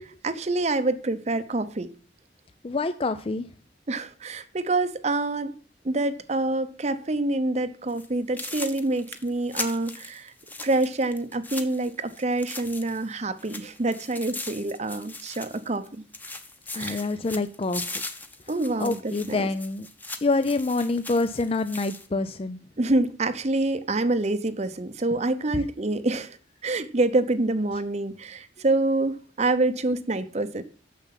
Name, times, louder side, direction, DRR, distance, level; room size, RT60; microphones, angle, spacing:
voice 1, 0.2-1.9 3.9-5.5 5.8-10.3 10.6-16.0 16.8-17.0 18.5-19.5 22.8-26.4 26.6-30.6, right 2 dB, 35° right, 0.7 m, -26 dB
voice 2, 2.6-3.4 16.7-17.9 18.8-19.9 20.2-22.6 25.5-25.6, left 3 dB, 30° left, 0.4 m, -26 dB
sound 1, 7.9-8.1 8.4-13.1 13.4-15.9 16.1-22.1, left 2 dB, 10° left, 1.0 m, -39 dB
9.3 x 7.0 x 5.7 m
head